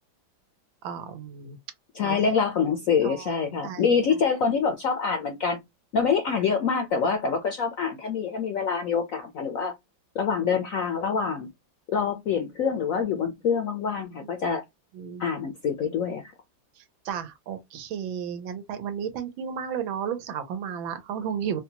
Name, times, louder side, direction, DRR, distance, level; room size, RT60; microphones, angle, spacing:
voice 1, 0.8-1.6 2.0-2.2 3.0-3.3 3.6-4.0 14.2-14.3 14.9-15.2 16.8-21.6, right 8 dB, 90° right, 1.5 m, -33 dB
voice 2, 1.9-5.6 5.9-9.7 10.1-11.5 11.9-14.6 15.2-16.3, left 6 dB, 75° left, 0.7 m, -25 dB
4.3 x 2.2 x 2.8 m
omnidirectional pair, 2.1 m